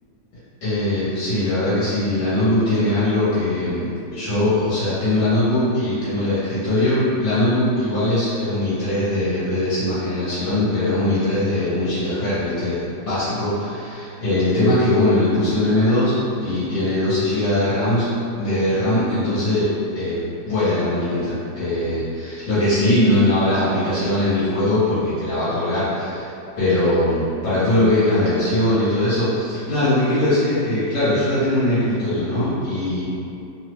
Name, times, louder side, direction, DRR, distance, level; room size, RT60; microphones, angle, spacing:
voice 1, 0.6-16.2 16.4-18.1 18.4-33.0, left 1 dB, 75° left, -13 dB, 1.6 m, -21 dB
3.5 x 2.1 x 2.9 m, 2.7 s
omnidirectional pair, 2.2 m